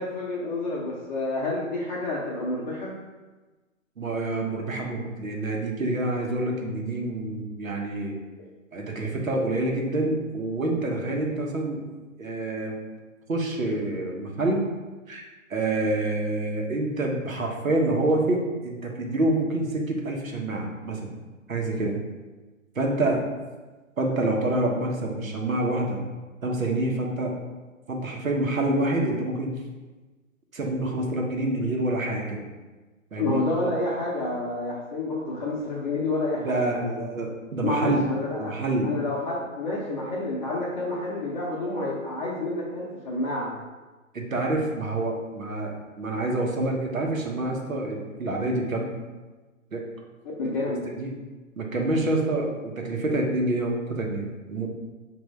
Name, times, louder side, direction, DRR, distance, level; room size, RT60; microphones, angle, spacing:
voice 1, 0.0-3.0 33.2-37.0 37.6-38.5 38.8-43.5 50.4-50.9, left 2 dB, 35° left, -5 dB, 0.7 m, -29 dB
voice 2, 4.0-8.1 8.7-11.9 12.2-12.7 13.3-14.7 15.1-15.2 15.5-21.1 21.5-21.9 22.7-23.2 24.0-26.0 26.4-27.4 27.9-29.6 30.5-32.4 33.1-33.4 36.3-38.1 38.4-38.9 44.1-48.9 49.7-49.8 50.9-51.1 51.6-54.7, right 2 dB, 80° right, 0 dB, 1.0 m, -27 dB
5.1 x 2.6 x 3.2 m, 1.2 s
figure-of-eight pair, 130°, 40 cm